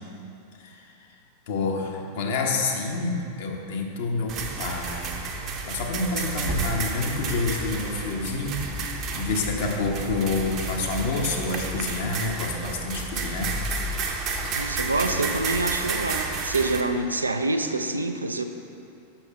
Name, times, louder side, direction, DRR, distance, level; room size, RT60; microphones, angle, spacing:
voice 1, 1.5-5.1 5.4-8.7 8.9-13.6 14.4-14.8 15.0-15.2, left 3 dB, 55° left, 1 dB, 0.9 m, -28 dB
sound 1, 4.3-16.8, right 3 dB, 35° right, 0.7 m, -31 dB
voice 2, 14.5-18.4, right 2 dB, 80° right, 7 dB, 0.4 m, -26 dB
6.3 x 5.7 x 5.7 m, 2.7 s
figure-of-eight pair, 90°, 0 cm